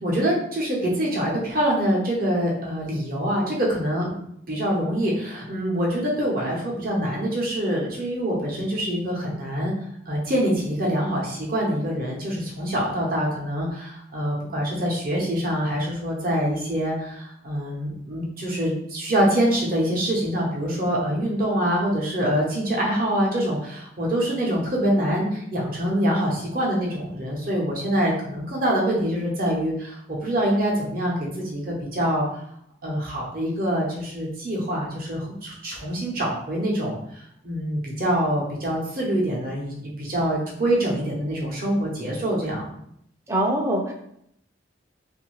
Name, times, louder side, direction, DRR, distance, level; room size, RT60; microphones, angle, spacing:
voice 1, 0.0-4.1 4.5-9.7 10.1-32.3 32.8-42.7, equal, 50° right, -3 dB, 0.8 m, -25 dB
voice 2, 43.3-43.9, right 1 dB, 15° right, 0 dB, 0.4 m, -23 dB
2.6 x 2.6 x 3.1 m, 0.73 s
head